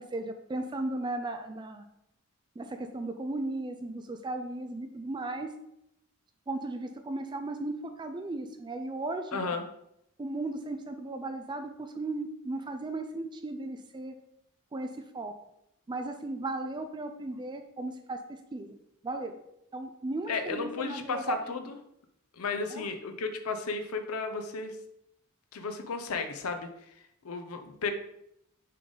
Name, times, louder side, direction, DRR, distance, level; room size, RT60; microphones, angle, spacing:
voice 1, 0.0-1.8 2.6-5.5 6.5-9.4 10.2-14.1 14.7-14.9 15.1-15.3 15.9-18.2 18.5-18.7 19.0-19.4 19.7-21.4 22.7-22.9, right 2 dB, 20° right, 7 dB, 0.3 m, -36 dB
voice 2, 9.3-9.6 20.3-21.7 22.3-24.8 25.5-26.7 27.2-27.9, left 4 dB, 90° left, 6 dB, 0.6 m, -34 dB
6.5 x 3.8 x 3.9 m, 0.79 s
head